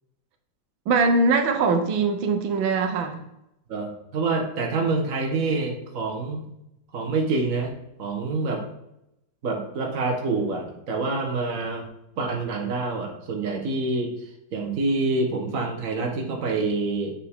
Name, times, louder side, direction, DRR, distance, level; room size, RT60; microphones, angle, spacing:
voice 1, 0.9-3.2, right 4 dB, 90° right, 7 dB, 1.6 m, -22 dB
voice 2, 3.7-6.4 6.9-7.7 8.0-8.6 9.4-11.9 12.2-14.1 14.5-17.1, right 3 dB, 45° right, 1 dB, 1.6 m, -26 dB
7.4 x 5.7 x 3.6 m, 0.84 s
omnidirectional pair, 2.1 m